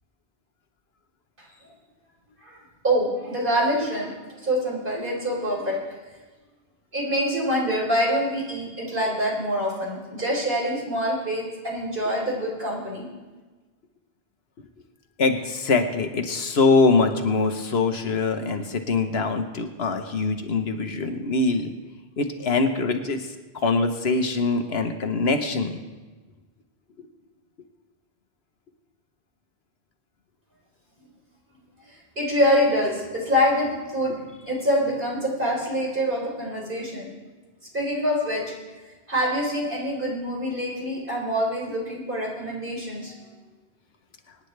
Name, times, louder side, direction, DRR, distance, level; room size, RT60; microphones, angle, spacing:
voice 1, 2.8-5.8 6.9-13.0 32.2-34.2 34.5-37.1 37.7-38.4 39.1-43.1, equal, 55° right, -3 dB, 4.2 m, -25 dB
voice 2, 15.2-21.7 22.2-23.3 23.6-25.8, left 3 dB, 75° left, 6 dB, 1.3 m, -23 dB
25.0 x 9.9 x 3.4 m, 1.3 s
omnidirectional pair, 1.1 m